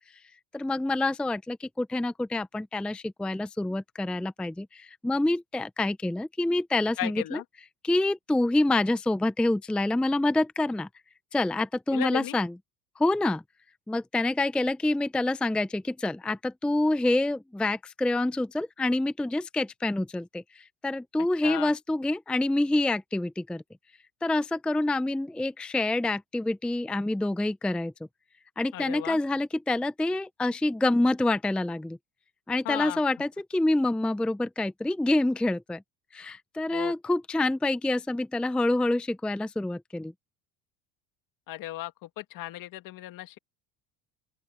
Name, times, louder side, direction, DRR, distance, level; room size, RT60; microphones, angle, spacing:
voice 1, 0.5-7.4 7.8-10.9 11.3-12.5 13.0-13.4 13.9-23.6 24.2-27.9 28.6-32.0 32.5-35.8 36.1-40.1, left 2 dB, 5° left, 0.5 m, -27 dB
voice 2, 7.0-7.4 11.9-12.4 21.4-21.7 28.7-29.2 32.6-33.0 36.7-36.9 41.5-43.4, left 15 dB, 60° left, 2.3 m, -35 dB
open air
cardioid pair, 120°, 37 cm